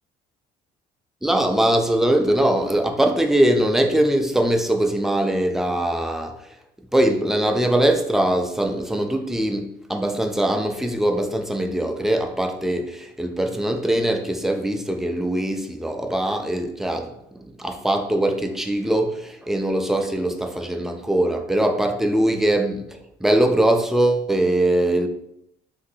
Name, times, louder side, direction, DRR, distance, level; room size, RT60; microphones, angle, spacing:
voice 1, 1.2-6.4 6.9-17.1 17.6-25.1, right 1 dB, ahead, 5 dB, 0.3 m, -21 dB
3.7 x 2.7 x 2.7 m, 0.77 s
cardioid pair, 110°, 17 cm